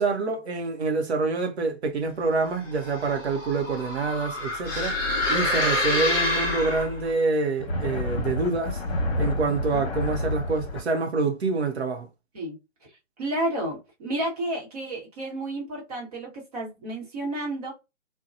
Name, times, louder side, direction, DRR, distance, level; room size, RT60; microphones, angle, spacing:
voice 1, 0.0-5.0 5.3-8.8 9.2-12.1, right 4 dB, 60° right, 0.8 m, -26 dB
sound 1, 2.7-7.1, left 2 dB, 20° left, 0.6 m, -27 dB
sound 2, 7.5-10.8, left 1 dB, 50° left, 0.9 m, -29 dB
voice 2, 12.3-12.9 13.2-17.7, right 1 dB, 30° right, 1.0 m, -31 dB
2.8 x 2.2 x 2.5 m
hypercardioid pair, 150°, 37 cm